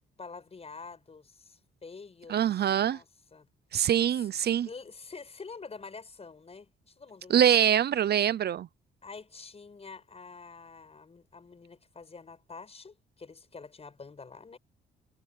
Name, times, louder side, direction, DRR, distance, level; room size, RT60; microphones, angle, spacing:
voice 1, 0.2-2.4 2.9-3.1 3.3-3.5 4.1-4.3 4.7-7.5 9.0-14.6, left 4 dB, 30° left, 5.5 m, -47 dB
voice 2, 2.3-3.0 3.7-4.7 7.3-8.7, right 10 dB, 55° right, 0.6 m, -24 dB
cardioid pair, 90°, 20 cm